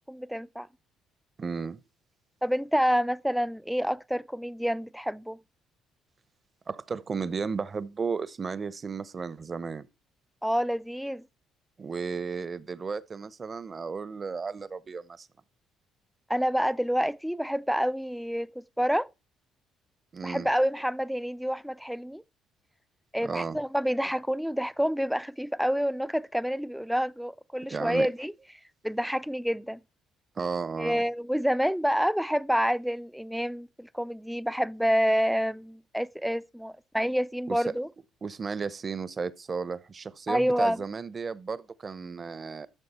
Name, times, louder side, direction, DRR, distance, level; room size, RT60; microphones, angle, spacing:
voice 1, 0.1-0.7 2.4-5.4 10.4-11.2 16.3-19.1 20.2-22.2 23.1-28.3 28.8-29.8 30.8-37.9 40.3-40.8, equal, ahead, 0.5 m, -28 dB
voice 2, 1.4-1.8 6.7-9.8 11.8-15.3 20.1-20.5 23.2-23.6 27.7-28.1 30.4-31.0 37.5-37.6 38.2-42.7, right 5 dB, 40° right, 0.8 m, -34 dB
13.0 x 6.5 x 4.3 m
supercardioid pair, 65°, 0 cm